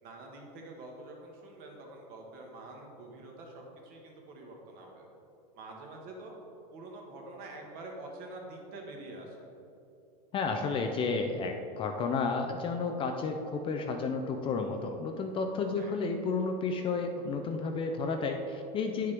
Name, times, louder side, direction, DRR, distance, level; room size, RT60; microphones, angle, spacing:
voice 1, 0.0-5.1 5.5-6.3 6.7-9.5 15.8-15.9, right 2 dB, 45° right, 0 dB, 1.6 m, -46 dB
voice 2, 10.3-19.1, left 4 dB, 25° left, 4 dB, 0.4 m, -32 dB
9.1 x 6.6 x 3.4 m, 2.8 s
supercardioid pair, 140°, 21 cm